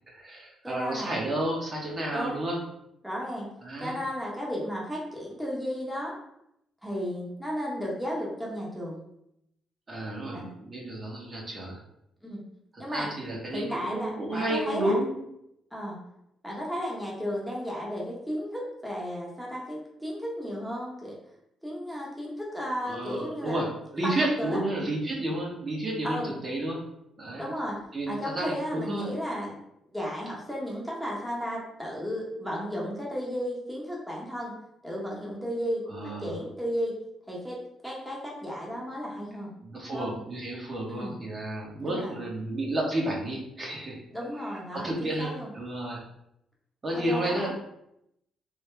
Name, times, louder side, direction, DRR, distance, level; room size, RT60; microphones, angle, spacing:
voice 1, 0.1-2.6 3.6-4.0 9.9-11.8 12.7-15.2 22.8-23.7 23.9-26.8 27.2-27.4 27.9-29.1 35.9-36.3 39.6-44.0 44.7-46.0 46.8-47.5, right 1 dB, 35° right, -2 dB, 1.0 m, -31 dB
voice 2, 0.6-1.1 2.1-2.4 3.0-3.5 3.8-6.1 6.8-9.0 10.3-10.5 12.2-12.4 12.8-13.1 13.5-14.9 15.7-16.0 16.4-21.2 21.6-23.6 24.0-24.6 26.0-26.3 27.4-27.8 28.1-29.5 29.9-34.5 34.8-35.8 36.2-36.9 37.3-37.6 37.8-39.5 39.9-40.1 40.9-41.1 41.8-42.2 44.1-45.5 46.9-47.5, equal, ahead, -4 dB, 1.0 m, -34 dB
3.2 x 2.7 x 3.3 m, 0.79 s
cardioid pair, 90°, 0 cm